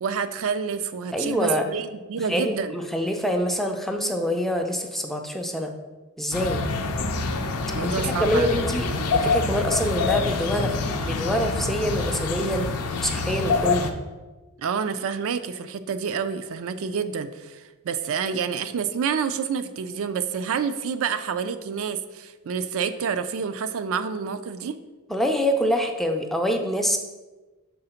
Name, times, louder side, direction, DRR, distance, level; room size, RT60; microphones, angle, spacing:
voice 1, 0.0-2.7 7.7-9.1 14.6-24.8, right 6 dB, 65° right, 10 dB, 0.4 m, -28 dB
voice 2, 1.1-1.6 2.3-5.7 6.2-6.6 7.8-10.7 11.0-12.7 13.0-13.9 25.1-27.0, equal, ahead, 3 dB, 0.4 m, -25 dB
sound 1, 6.3-13.9, left 3 dB, 90° left, 0.6 m, -26 dB
4.8 x 3.9 x 5.6 m, 1.2 s
head